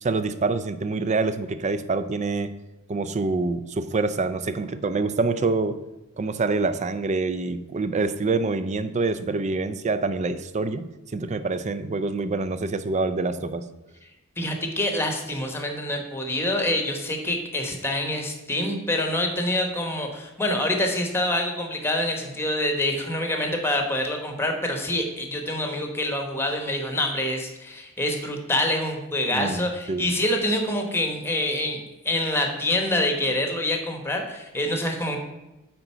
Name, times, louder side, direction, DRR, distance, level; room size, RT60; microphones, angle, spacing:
voice 1, 0.0-2.5 2.9-5.8 6.2-13.7 29.3-30.1, right 3 dB, 35° right, 12 dB, 0.4 m, -26 dB
voice 2, 14.4-31.8 32.0-35.2, left 1 dB, 10° left, 4 dB, 1.0 m, -26 dB
8.8 x 3.9 x 5.6 m, 1.0 s
head